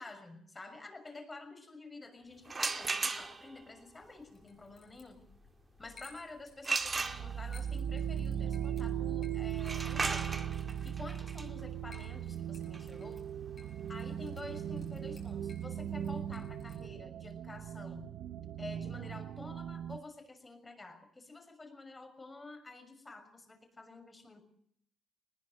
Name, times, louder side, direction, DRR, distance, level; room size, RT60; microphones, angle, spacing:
voice 1, 0.0-5.2 5.8-10.3 10.8-13.2 13.9-18.2 18.6-24.4, left 3 dB, 20° left, 8 dB, 6.3 m, -49 dB
sound 1, 2.5-3.6 6.6-7.7 9.5-15.2, right 4 dB, 30° right, 2.2 m, -37 dB
sound 2, 4.0-16.9, left 3 dB, 40° left, 7.2 m, -61 dB
sound 3, 6.8-20.0, right 9 dB, 75° right, 0.9 m, -38 dB
21.0 x 20.0 x 7.7 m, 0.68 s
cardioid pair, 90°, 0 cm